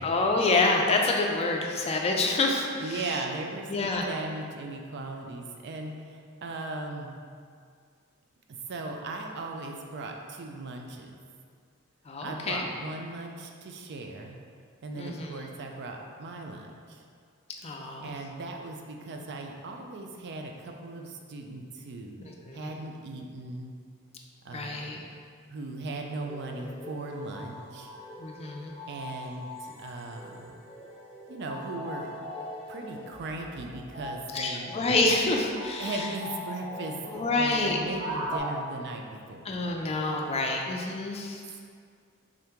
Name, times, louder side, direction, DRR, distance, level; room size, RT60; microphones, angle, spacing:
voice 1, 0.0-3.2 3.7-4.1 12.1-12.6 14.9-15.4 17.6-18.1 22.2-22.7 24.5-25.0 28.2-28.7 34.3-36.1 37.1-37.8 39.5-41.4, left 3 dB, 30° left, 1 dB, 0.4 m, -27 dB
voice 2, 2.8-7.2 8.5-11.1 12.2-14.4 14.8-17.0 18.0-22.1 22.5-23.7 24.4-25.0 25.5-27.9 28.9-30.6 31.3-32.1 32.7-34.7 35.8-37.0 37.3-39.4 41.5-41.6, right 2 dB, 55° right, 2 dB, 0.4 m, -38 dB
sound 1, 26.2-38.4, left 1 dB, 30° right, 1.3 m, -41 dB
3.7 x 2.9 x 3.4 m, 2.2 s
head